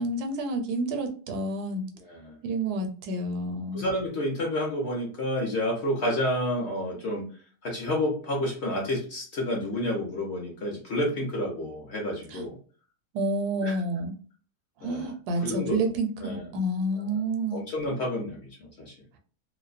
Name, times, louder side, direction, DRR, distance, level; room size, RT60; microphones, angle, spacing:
voice 1, 0.0-1.8 2.4-3.9 12.3-12.4 13.1-14.1 14.8-17.7, right 2 dB, 80° right, 4 dB, 1.1 m, -29 dB
voice 2, 2.0-2.4 3.7-7.2 7.6-12.5 13.6-13.8 14.8-15.1 15.4-15.9 16.2-16.5 17.0-17.1 17.5-18.9, left 1 dB, 55° left, -2 dB, 0.8 m, -30 dB
2.7 x 2.0 x 2.4 m, 0.42 s
omnidirectional pair, 1.7 m